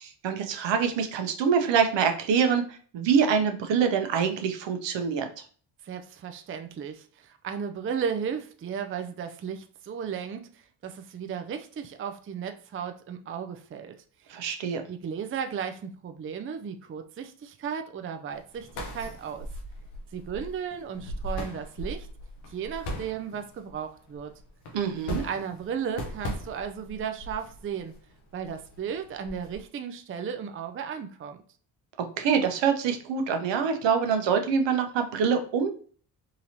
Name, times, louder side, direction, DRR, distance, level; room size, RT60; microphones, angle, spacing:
voice 1, 0.0-5.3 14.3-14.8 24.7-25.2 32.0-35.7, right 6 dB, 65° right, 6 dB, 0.8 m, -25 dB
voice 2, 5.8-13.9 14.9-19.5 20.1-22.1 22.5-24.3 25.1-27.9 28.3-31.4, right 7 dB, 25° right, 7 dB, 0.5 m, -35 dB
sound 1, 18.3-29.6, equal, 85° left, 1.0 m, -39 dB
3.8 x 2.8 x 2.8 m, 0.43 s
hypercardioid pair, 50°, 48 cm